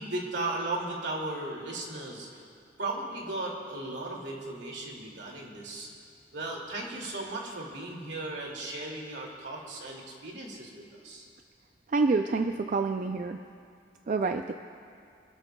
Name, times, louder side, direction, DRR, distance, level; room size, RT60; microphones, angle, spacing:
voice 1, 0.0-2.4 2.8-5.9 6.3-11.3, right 2 dB, 75° right, -1 dB, 2.4 m, -36 dB
voice 2, 11.9-13.4 14.1-14.5, right 3 dB, 45° right, 6 dB, 0.4 m, -27 dB
26.0 x 13.0 x 2.3 m, 2.4 s
head